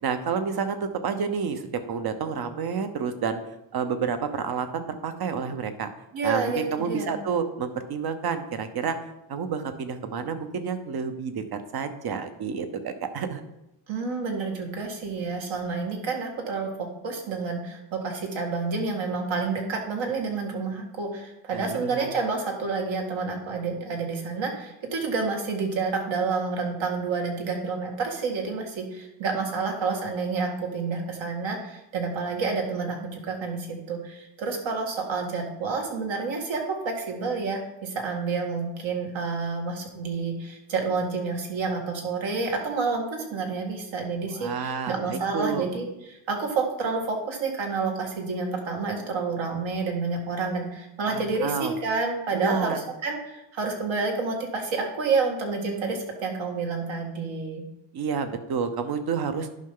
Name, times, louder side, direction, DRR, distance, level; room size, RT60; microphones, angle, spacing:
voice 1, 0.0-3.4 3.7-5.9 6.2-9.0 9.3-13.4 21.5-22.1 44.3-45.7 51.1-51.7 52.3-52.8 57.9-59.5, right 6 dB, 50° right, 9 dB, 0.9 m, -29 dB
voice 2, 6.1-7.2 13.9-57.7, right 4 dB, 70° right, 1 dB, 2.0 m, -29 dB
11.0 x 5.5 x 3.9 m, 0.90 s
cardioid pair, 135°, 46 cm